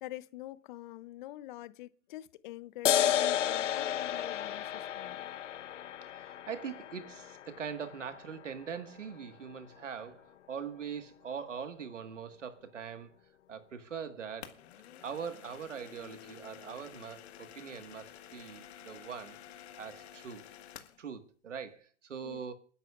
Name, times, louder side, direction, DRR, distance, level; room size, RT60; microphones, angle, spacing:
voice 1, 0.0-5.3 22.2-22.4, left 16 dB, 45° left, 0.7 m, -46 dB
sound 1, 2.9-9.8, left 10 dB, 90° left, 0.6 m, -33 dB
voice 2, 6.1-13.1 13.5-14.6 15.0-19.4 19.8-20.4 21.0-22.5, right 7 dB, 90° right, 1.7 m, -42 dB
sound 2, 14.4-21.0, left 10 dB, 60° left, 1.6 m, -51 dB
28.0 x 11.0 x 2.4 m
hypercardioid pair, 125°, 36 cm